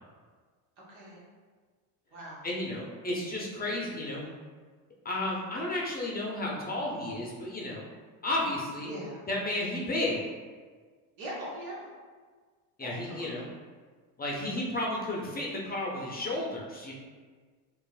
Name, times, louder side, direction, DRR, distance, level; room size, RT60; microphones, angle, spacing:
voice 1, 0.8-1.2 2.1-2.4 5.1-5.5 8.8-9.2 11.2-11.9 12.8-13.4, right 1 dB, 75° right, -5 dB, 1.3 m, -42 dB
voice 2, 2.4-4.3 5.0-7.8 8.2-8.9 9.3-10.2 12.8-13.4 14.2-16.9, left 1 dB, 20° left, -3 dB, 0.6 m, -32 dB
4.4 x 2.5 x 2.4 m, 1.5 s
supercardioid pair, 100°, 45 cm